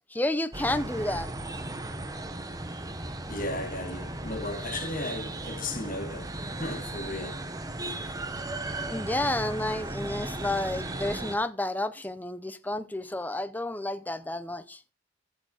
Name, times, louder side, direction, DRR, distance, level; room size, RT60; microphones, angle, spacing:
voice 1, 0.1-1.3 8.9-14.8, left 1 dB, 10° left, 0.5 m, -30 dB
sound 1, 0.5-11.4, right 2 dB, 20° right, 0.9 m, -36 dB
voice 2, 3.3-6.3 6.6-7.4, left 2 dB, 45° left, 1.5 m, -35 dB
14.5 x 6.7 x 4.0 m
head